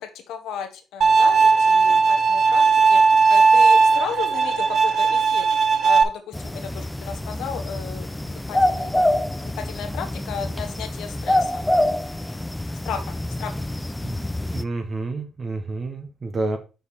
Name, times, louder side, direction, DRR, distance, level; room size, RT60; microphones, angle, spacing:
voice 1, 0.0-3.0 3.3-5.5 5.8-8.9 9.4-11.7 12.8-13.5, left 7 dB, 85° left, 6 dB, 1.2 m, -34 dB
Bowed string instrument, 1.0-6.0, right 4 dB, 55° right, 1.0 m, -17 dB
sound 1, 6.3-14.6, left 1 dB, 10° left, 0.4 m, -26 dB
voice 2, 14.0-16.6, right 2 dB, 35° right, 6 dB, 1.2 m, -30 dB
6.4 x 4.8 x 4.1 m, 0.32 s
cardioid pair, 90°, 0 cm